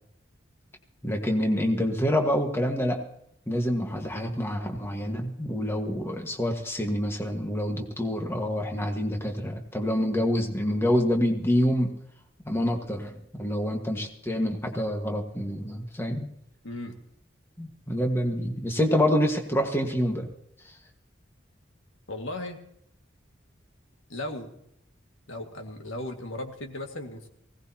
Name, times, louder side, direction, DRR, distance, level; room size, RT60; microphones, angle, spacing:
voice 1, 1.0-3.0 3.5-11.9 12.4-16.3 17.6-20.3, equal, 10° left, 2 dB, 1.6 m, -27 dB
voice 2, 16.6-17.0 22.1-22.6 24.1-24.6 25.3-27.3, left 1 dB, 90° left, 4 dB, 2.1 m, -36 dB
20.0 x 18.0 x 2.9 m, 0.75 s
head